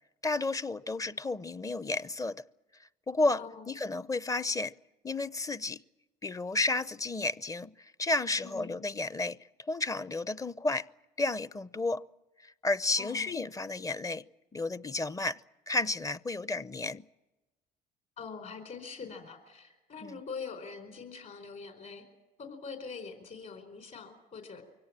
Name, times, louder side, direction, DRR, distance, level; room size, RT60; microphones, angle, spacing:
voice 1, 0.2-2.4 3.1-3.4 3.7-4.7 5.0-5.8 6.2-7.7 8.0-10.9 11.2-12.0 12.6-14.2 14.5-15.4 15.7-17.0 20.0-20.1, left 2 dB, 20° left, 0.7 m, -32 dB
voice 2, 8.4-8.8 13.0-13.3 18.2-22.0 22.4-24.6, left 5 dB, 55° left, 4.5 m, -43 dB
24.0 x 17.5 x 8.8 m
supercardioid pair, 85°, 17 cm